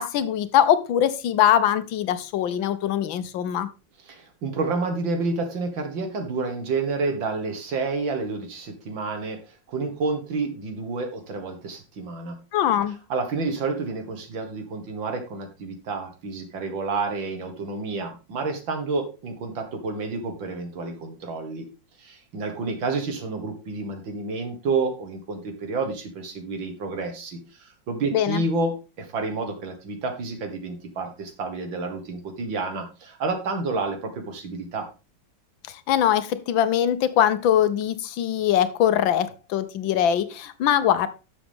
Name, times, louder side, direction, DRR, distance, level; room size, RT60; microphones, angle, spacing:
voice 1, 0.0-3.7 12.5-12.9 28.1-28.4 35.7-41.1, left 10 dB, 90° left, 1.6 m, -22 dB
voice 2, 4.1-12.4 13.1-21.7 22.0-34.9, right 3 dB, 80° right, 2.5 m, -29 dB
11.5 x 7.0 x 3.6 m
omnidirectional pair, 2.0 m